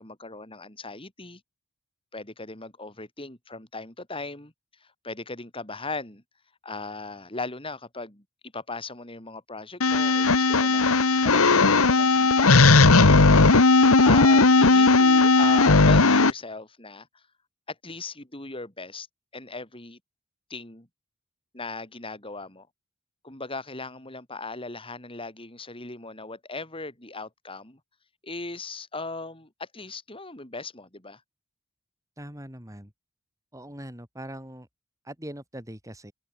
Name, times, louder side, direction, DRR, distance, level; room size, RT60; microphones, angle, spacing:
voice 1, 0.0-1.4 2.1-4.5 4.8-6.2 6.6-8.2 8.5-17.2 17.7-19.1 19.3-20.0 20.5-20.9 21.5-22.7 23.2-27.8 28.2-31.2, left 3 dB, 25° left, 4.3 m, -38 dB
sound 1, 9.8-16.3, left 3 dB, 75° left, 1.5 m, -17 dB
voice 2, 32.2-32.9 33.5-34.7 35.0-36.1, right 1 dB, 15° right, 6.3 m, -41 dB
open air
head